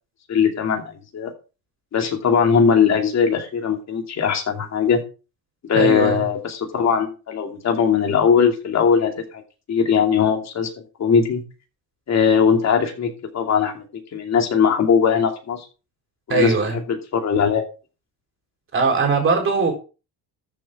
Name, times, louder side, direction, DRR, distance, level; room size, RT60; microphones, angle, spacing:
voice 1, 0.3-0.8 1.1-1.3 1.9-5.0 5.6-9.4 9.7-10.7 11.0-11.4 12.1-13.8 14.1-15.6 16.3-16.5 17.1-17.6, left 6 dB, 40° left, 2.8 m, -19 dB
voice 2, 5.7-6.2 16.3-16.8 18.7-19.7, right 4 dB, 30° right, 4.1 m, -20 dB
13.5 x 7.2 x 3.7 m
cardioid pair, 150°, 41 cm